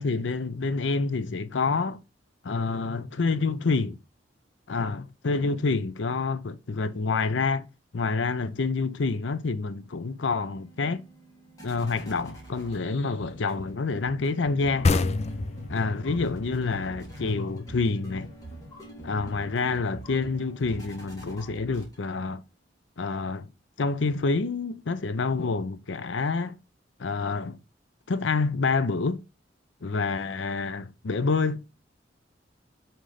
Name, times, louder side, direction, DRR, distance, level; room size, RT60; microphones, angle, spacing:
voice 1, 0.0-2.0 2.4-4.0 4.7-7.7 7.9-11.0 11.6-15.0 15.7-18.3 19.0-22.4 23.0-23.5 23.8-26.6 27.0-27.6 28.1-29.2 29.8-31.6, left 4 dB, 85° left, 0.6 m, -27 dB
sound 1, 9.6-22.3, right 1 dB, 20° left, 2.4 m, -45 dB
sound 2, 14.8-18.2, left 3 dB, 35° left, 0.4 m, -28 dB
5.9 x 3.9 x 4.9 m
head